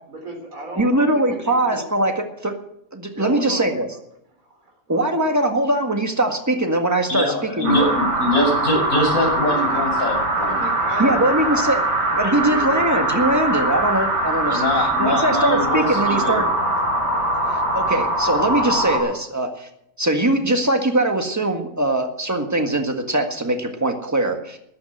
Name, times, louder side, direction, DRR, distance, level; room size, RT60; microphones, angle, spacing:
voice 1, 0.1-1.8 3.1-3.7 4.9-5.5 9.5-9.8 10.4-11.8 12.2-13.3, right 1 dB, 70° right, 0 dB, 4.4 m, -35 dB
voice 2, 0.7-2.6 2.9-4.0 4.9-7.9 11.0-11.8 12.1-16.5 17.7-19.7 20.0-24.6, right 1 dB, 10° right, 4 dB, 1.7 m, -21 dB
voice 3, 7.1-10.6 11.0-11.2 14.4-16.4, left 1 dB, 65° left, 2 dB, 6.8 m, -23 dB
sound 1, 7.6-19.0, right 1 dB, 50° right, 6.3 m, -22 dB
14.0 x 9.6 x 7.8 m, 0.76 s
omnidirectional pair, 1.5 m